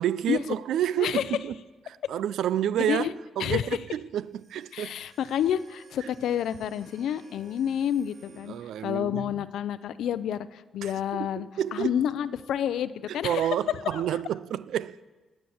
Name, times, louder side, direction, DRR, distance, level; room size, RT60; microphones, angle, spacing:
voice 1, 0.0-1.6 1.9-4.9 6.0-6.1 8.5-9.4 10.8-12.0 13.1-15.0, right 11 dB, 80° right, 0.4 m, -30 dB
voice 2, 2.8-3.1 3.4-3.7 4.7-8.6 8.8-13.5 13.9-14.0, left 9 dB, 80° left, 0.6 m, -29 dB
sound 1, 4.3-9.0, right 3 dB, 50° right, 5.1 m, -57 dB
19.5 x 8.1 x 7.1 m
cardioid pair, 140°, 0 cm